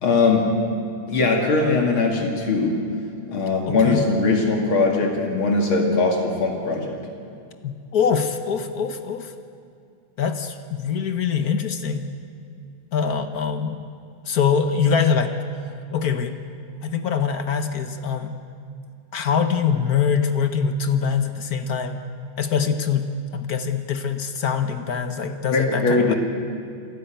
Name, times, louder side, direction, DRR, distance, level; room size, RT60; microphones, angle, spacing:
voice 1, 0.0-0.5 1.1-2.8 3.3-7.0 25.5-26.2, left 3 dB, 80° left, 1 dB, 3.1 m, -20 dB
voice 2, 3.7-4.0 7.6-9.3 10.2-12.0 12.9-13.8 14.3-15.3 15.9-16.4 16.8-18.3 19.1-22.0 22.4-26.1, left 6 dB, 55° left, 8 dB, 1.4 m, -23 dB
28.0 x 12.5 x 9.1 m, 2.3 s
omnidirectional pair, 2.3 m